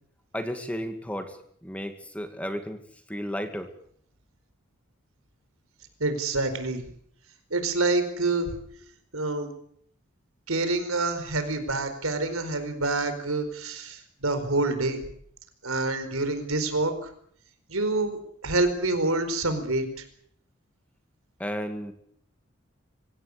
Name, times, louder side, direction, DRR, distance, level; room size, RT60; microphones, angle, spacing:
voice 1, 0.3-1.4 1.6-2.8 3.1-3.7 21.4-21.9, equal, 5° left, 7 dB, 2.1 m, -33 dB
voice 2, 6.0-6.8 7.5-8.5 9.1-9.5 10.5-15.0 15.6-16.9 17.7-18.2 18.4-20.0, right 2 dB, 90° right, 9 dB, 4.7 m, -27 dB
25.5 x 17.0 x 8.6 m, 0.65 s
head